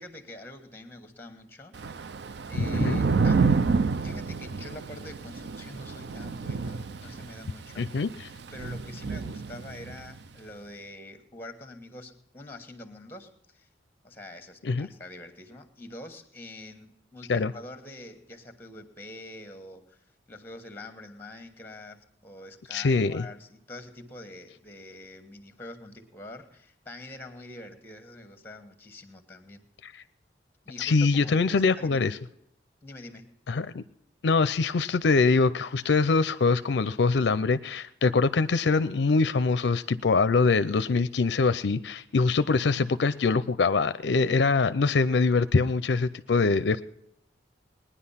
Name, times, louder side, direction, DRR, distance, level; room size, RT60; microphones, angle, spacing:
voice 1, 0.0-1.8 2.5-7.9 8.5-13.7 14.0-29.7 30.6-32.2 32.8-33.3, left 1 dB, 10° left, 8 dB, 1.4 m, -45 dB
Thunder / Rain, 1.7-10.1, right 4 dB, 60° right, 0.5 m, -29 dB
voice 2, 2.6-3.0 7.8-8.1 14.6-14.9 17.3-17.5 22.7-23.2 29.8-29.9 30.8-32.2 33.5-33.8 34.2-46.8, left 4 dB, 65° left, 14 dB, 0.5 m, -24 dB
19.5 x 10.0 x 5.7 m, 0.74 s
head